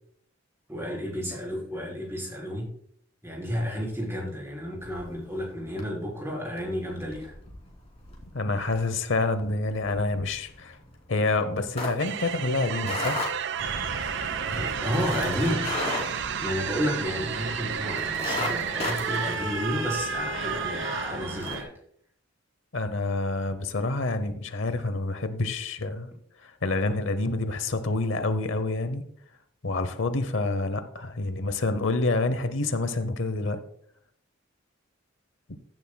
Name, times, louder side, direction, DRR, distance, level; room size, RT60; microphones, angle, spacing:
voice 1, 0.7-2.7 3.2-7.3 14.5-15.7 16.4-21.7, equal, 15° right, -3 dB, 4.2 m, -31 dB
sound 1, 4.8-5.4 5.8-6.0 6.4-17.1 17.5-17.6 17.9-20.4 20.8-20.9 21.3-21.6, left 2 dB, 30° left, 3.0 m, -35 dB
voice 2, 8.3-10.8 11.1-13.2 22.7-26.1 26.4-29.0 29.6-33.6, left 2 dB, 70° left, 11 dB, 0.9 m, -27 dB
sound 2, 12.0-19.4, right 9 dB, 60° right, 0.4 m, -32 dB
sound 3, 13.6-21.6, right 3 dB, 75° right, 2.1 m, -34 dB
15.5 x 10.5 x 2.3 m, 0.65 s
head